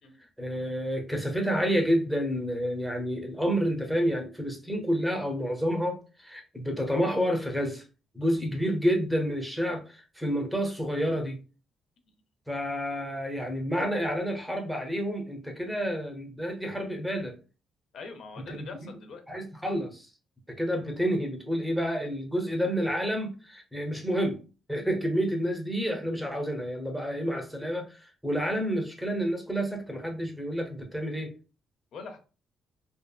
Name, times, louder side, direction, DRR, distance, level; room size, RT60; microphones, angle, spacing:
voice 1, 0.4-7.8 8.1-11.4 12.5-17.4 18.5-18.7 19.3-20.1 20.5-24.4 24.7-31.3, equal, ahead, 3 dB, 0.6 m, -29 dB
voice 2, 17.9-19.2 31.9-32.2, left 4 dB, 70° left, 6 dB, 0.6 m, -43 dB
2.7 x 2.3 x 2.2 m, 0.33 s
cardioid pair, 90°, 0 cm